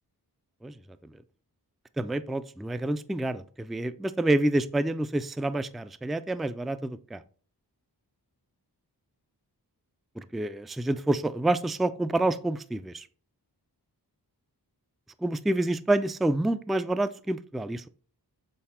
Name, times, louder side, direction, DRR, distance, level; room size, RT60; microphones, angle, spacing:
voice 1, 2.0-7.2 10.2-13.1 15.2-17.9, right 2 dB, ahead, 0.3 m, -28 dB
7.7 x 4.1 x 4.2 m
wide cardioid pair, 70°, 40 cm